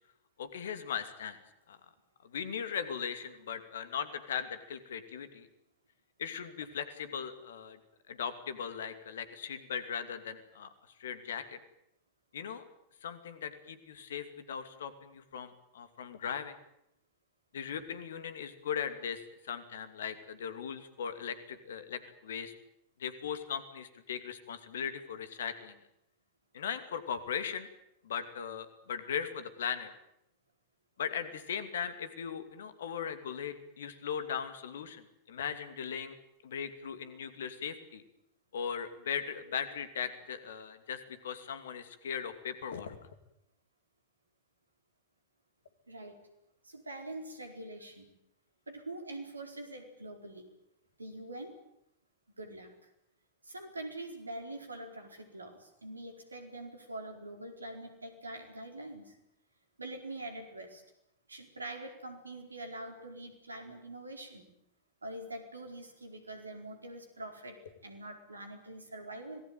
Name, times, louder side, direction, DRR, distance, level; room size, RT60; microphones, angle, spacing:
voice 1, 0.4-1.4 1.7-1.8 2.2-5.5 6.2-7.8 8.1-10.7 11.0-11.6 12.3-12.6 13.0-16.6 17.5-22.5 23.0-25.8 26.5-27.7 28.0-29.9 31.0-36.2 36.4-38.0 38.5-43.0, left 7 dB, 65° left, 11 dB, 2.6 m, -38 dB
voice 2, 45.9-46.2 46.6-48.1 48.7-50.5 51.0-51.5 52.4-52.7 53.4-59.2 59.8-60.8 61.3-64.5 65.0-69.4, right 1 dB, 80° right, 5 dB, 4.6 m, -44 dB
26.0 x 19.0 x 9.1 m, 0.80 s
figure-of-eight pair, 90°, 0 cm